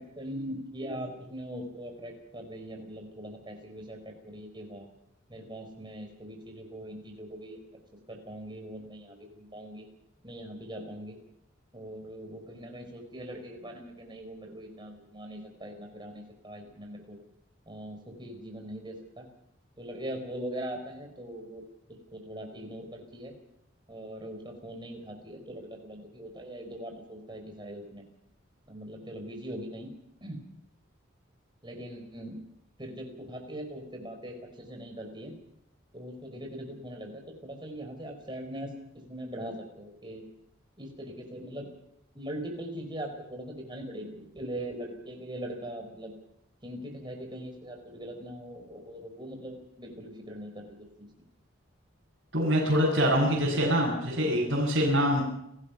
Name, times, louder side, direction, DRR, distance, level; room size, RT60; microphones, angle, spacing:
voice 1, 0.0-4.9 5.3-7.6 8.1-9.9 10.2-11.1 11.7-17.2 17.7-19.3 19.8-21.6 22.1-23.3 23.9-28.1 28.7-29.9 30.2-30.4 31.6-32.4 32.8-35.3 35.9-38.7 39.1-40.2 40.8-41.6 42.1-46.1 46.6-51.1, right 1 dB, 20° right, 3 dB, 4.5 m, -41 dB
voice 2, 52.3-55.2, equal, 55° right, -6 dB, 7.4 m, -24 dB
29.5 x 16.0 x 5.9 m, 0.78 s
head